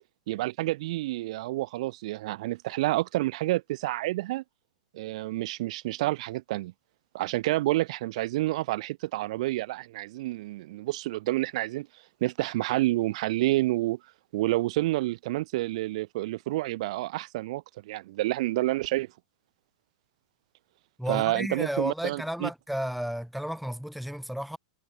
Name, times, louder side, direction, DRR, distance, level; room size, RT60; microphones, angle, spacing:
voice 1, 0.3-4.4 4.9-6.7 7.1-11.9 12.2-14.0 14.3-19.1 21.1-22.5, right 17 dB, 60° right, 0.8 m, -29 dB
voice 2, 21.0-24.6, equal, ahead, 0.7 m, -32 dB
hypercardioid pair, 125°, 4 cm